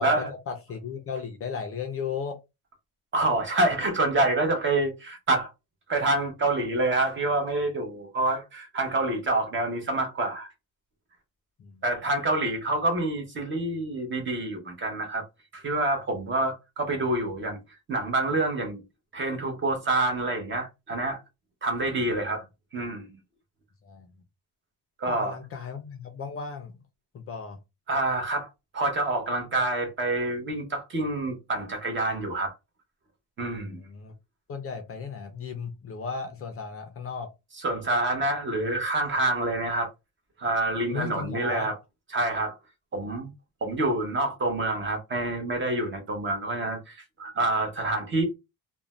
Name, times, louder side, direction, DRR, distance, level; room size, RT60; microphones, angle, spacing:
voice 1, 0.0-2.3 11.6-11.8 22.0-22.4 23.8-24.1 25.1-26.8 27.1-27.6 33.6-34.1 34.5-37.3 40.9-41.7, left 5 dB, 40° left, 0.4 m, -35 dB
voice 2, 3.1-5.5 5.9-10.5 11.8-15.2 15.5-17.6 17.9-18.8 19.1-21.2 21.6-22.4 22.7-23.1 25.0-25.4 27.9-28.5 28.7-32.5 33.4-33.8 37.6-39.9 40.4-41.7 42.1-42.6 42.9-43.3 43.6-48.2, right 2 dB, 30° right, 0.8 m, -27 dB
2.5 x 2.1 x 3.0 m
cardioid pair, 170°, 39 cm